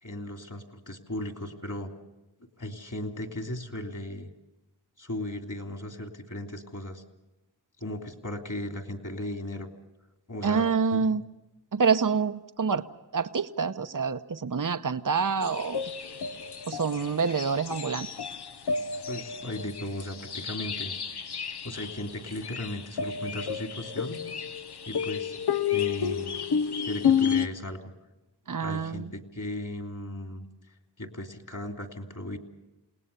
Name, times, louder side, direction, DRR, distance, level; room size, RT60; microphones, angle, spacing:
voice 1, 0.0-1.9 2.6-4.3 5.0-7.0 7.8-9.7 10.3-11.2 19.1-20.9 21.6-24.2 24.8-25.4 25.7-26.4 26.8-27.8 28.6-30.4 31.0-32.4, left 1 dB, 50° left, 5 dB, 3.0 m, -36 dB
voice 2, 10.4-11.2 11.7-12.8 13.1-15.9 16.7-18.1 28.5-29.1, right 5 dB, 50° right, 11 dB, 0.9 m, -27 dB
sound 1, 15.4-27.5, left 7 dB, 70° left, 0.9 m, -31 dB
28.5 x 19.0 x 6.8 m, 0.96 s
wide cardioid pair, 40°, 41 cm